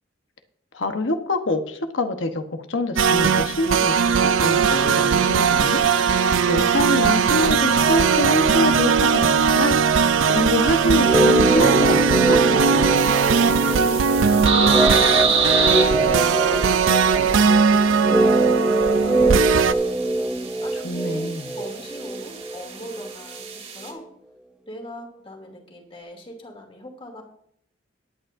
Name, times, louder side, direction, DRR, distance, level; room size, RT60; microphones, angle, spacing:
voice 1, 0.7-5.8 6.5-9.8 10.3-12.0 12.3-12.4 20.8-21.5, left 2 dB, 70° left, 7 dB, 1.1 m, -25 dB
sound 1, 3.0-19.7, right 6 dB, 85° right, 0.5 m, -19 dB
sound 2, 11.0-23.1 23.4-23.5, right 2 dB, 5° right, 0.5 m, -23 dB
sound 3, 13.0-23.9, right 5 dB, 35° right, 2.1 m, -28 dB
voice 2, 13.3-13.8 14.2-15.9 16.4-19.8 20.6-24.1 24.7-27.2, left 1 dB, 30° left, 2 dB, 2.5 m, -40 dB
19.5 x 9.1 x 2.6 m, 0.70 s
head